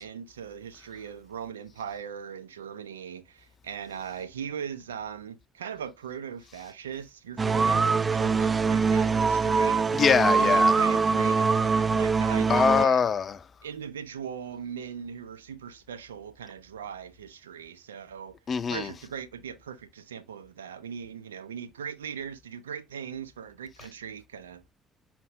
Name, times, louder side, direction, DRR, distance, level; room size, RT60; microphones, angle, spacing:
voice 1, 0.0-9.9 10.4-13.0 13.6-18.4 18.7-24.7, right 7 dB, 85° right, 0.7 m, -39 dB
sound 1, 7.4-12.9, right 4 dB, 35° right, 0.3 m, -23 dB
voice 2, 9.9-10.8 12.5-13.4 18.5-18.9, left 6 dB, 45° left, 0.5 m, -23 dB
4.3 x 2.0 x 4.3 m
hypercardioid pair, 50°, 0 cm